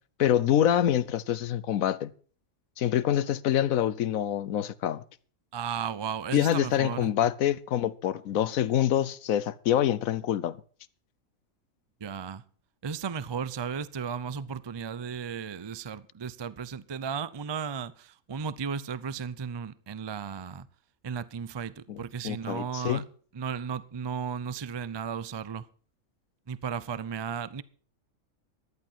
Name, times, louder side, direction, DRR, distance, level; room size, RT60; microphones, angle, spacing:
voice 1, 0.2-2.1 2.8-5.0 6.3-10.6 21.9-22.0 22.2-23.0, left 10 dB, 80° left, 1.2 m, -26 dB
voice 2, 5.5-7.1 12.0-12.4 12.8-20.7 21.0-23.0 23.3-25.7 26.5-27.6, right 6 dB, 35° right, 0.4 m, -35 dB
14.5 x 11.5 x 4.4 m
omnidirectional pair, 1.4 m